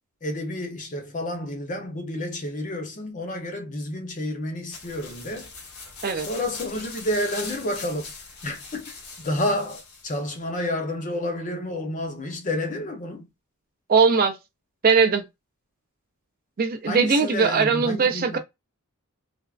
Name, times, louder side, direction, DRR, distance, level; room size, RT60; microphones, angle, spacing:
voice 1, 0.2-5.5 6.1-8.1 8.4-13.3 16.8-18.4, left 1 dB, 35° left, 0.7 m, -30 dB
sound 1, 4.7-10.3, left 4 dB, 80° left, 1.2 m, -41 dB
voice 2, 13.9-14.4 14.8-15.3 16.6-18.4, right 5 dB, 40° right, 0.4 m, -20 dB
3.4 x 2.0 x 2.4 m
head